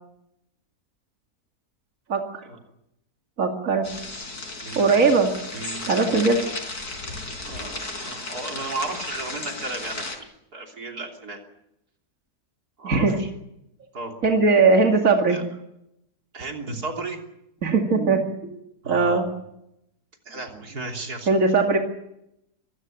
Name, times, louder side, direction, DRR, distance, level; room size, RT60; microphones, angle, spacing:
voice 1, 2.1-2.4 3.4-3.9 4.7-5.3 5.9-6.5 12.8-13.2 14.2-15.5 17.6-18.2 18.5-18.6 18.9-19.3 21.3-21.8, right 4 dB, 60° right, 3 dB, 2.7 m, -19 dB
sound 1, 3.8-10.2, left 2 dB, 85° left, 5.2 m, -34 dB
voice 2, 4.6-5.2 5.5-6.3 7.4-10.1 10.5-11.4 12.8-13.3 13.9-14.2 15.2-15.4 16.3-17.2 18.8-19.2 20.3-21.3, right 3 dB, 90° right, 2 dB, 3.8 m, -34 dB
25.0 x 15.5 x 9.1 m, 0.83 s
omnidirectional pair, 1.6 m